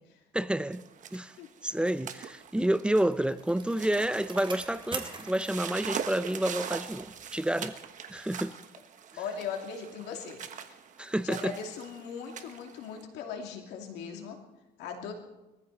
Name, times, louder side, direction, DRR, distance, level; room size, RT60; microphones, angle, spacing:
voice 1, 0.3-0.8 1.1-1.3 1.6-7.8 8.1-8.5 11.0-11.5, right 1 dB, 5° right, 0.5 m, -29 dB
sound 1, 0.7-13.0, right 7 dB, 50° right, 1.3 m, -42 dB
Bicycle, 2.6-7.5 7.8-7.9, right 4 dB, 30° right, 3.0 m, -45 dB
voice 2, 9.2-10.4 11.2-14.4 14.8-15.1, left 6 dB, 85° left, 2.7 m, -39 dB
21.5 x 14.5 x 4.1 m
cardioid pair, 110°, 17 cm